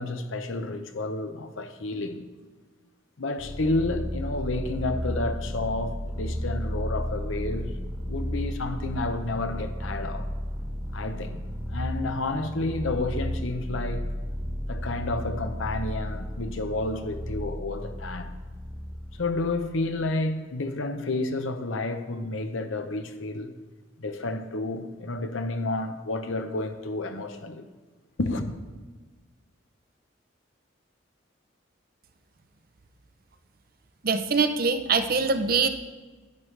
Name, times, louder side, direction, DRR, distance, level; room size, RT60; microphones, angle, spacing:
voice 1, 0.0-2.2 3.2-7.7 8.0-10.3 10.9-11.4 11.7-14.1 14.7-18.3 19.2-23.5 24.0-27.6 28.2-28.6, left 2 dB, 75° left, 0.8 m, -30 dB
sound 1, 3.4-20.1, equal, 15° right, 1.2 m, -33 dB
voice 2, 34.0-35.7, right 4 dB, 45° right, 0.6 m, -23 dB
10.5 x 9.3 x 3.3 m
head